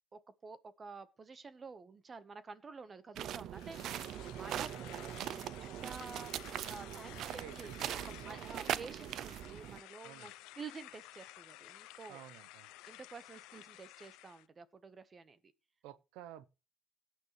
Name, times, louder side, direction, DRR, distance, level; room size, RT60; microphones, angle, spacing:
voice 1, 0.1-3.8 4.3-5.5 5.8-12.2 12.9-15.4, right 4 dB, 30° right, 1.3 m, -50 dB
sound 1, 3.2-9.8, right 11 dB, 65° right, 0.5 m, -41 dB
sound 2, 3.5-14.5, left 18 dB, 85° left, 0.7 m, -54 dB
voice 2, 7.4-8.5 10.0-10.3 12.1-12.7 15.8-16.5, right 12 dB, 85° right, 1.0 m, -53 dB
17.5 x 9.5 x 3.3 m
cardioid pair, 100°, 0 cm